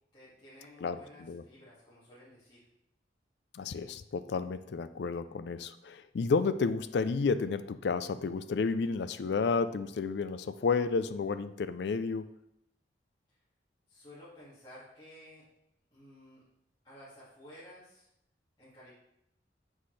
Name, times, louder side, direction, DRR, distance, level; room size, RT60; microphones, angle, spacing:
voice 1, 0.1-2.6 13.9-15.4 15.9-16.4 16.8-18.1 18.6-18.9, left 1 dB, 25° left, -10 dB, 2.0 m, -53 dB
voice 2, 0.8-1.4 3.5-12.2, left 4 dB, 70° left, 12 dB, 0.4 m, -31 dB
7.4 x 6.3 x 3.2 m, 0.77 s
head